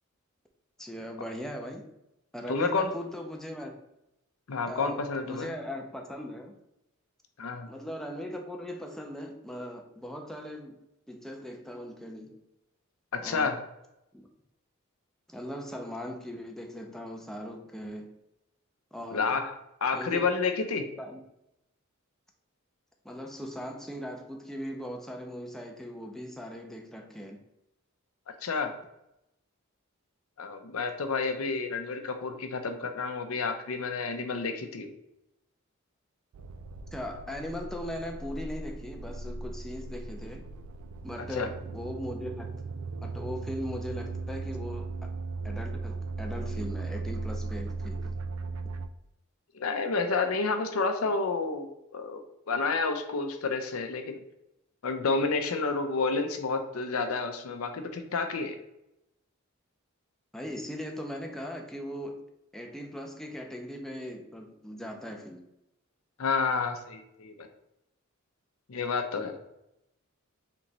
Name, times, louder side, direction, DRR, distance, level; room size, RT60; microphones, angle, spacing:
voice 1, 0.8-1.9 2.3-3.8 4.7-6.6 7.7-10.8 11.1-12.4 13.2-13.5 14.1-14.2 15.3-18.2 18.9-19.3 19.9-20.2 21.0-21.2 23.0-27.4 36.9-40.5 41.0-42.5 43.0-45.1 45.4-48.2 60.3-62.3 62.5-65.4, equal, ahead, 2 dB, 0.5 m, -39 dB
voice 2, 2.5-3.0 4.5-5.5 7.4-7.7 13.1-13.6 19.1-20.9 28.4-28.7 30.4-34.9 41.3-41.5 49.5-52.2 52.5-54.2 54.8-58.5 66.2-67.5 68.7-69.3, left 4 dB, 75° left, 6 dB, 0.6 m, -30 dB
sound 1, 36.3-48.9, right 3 dB, 85° right, 0.3 m, -37 dB
3.4 x 3.0 x 3.9 m, 0.86 s
head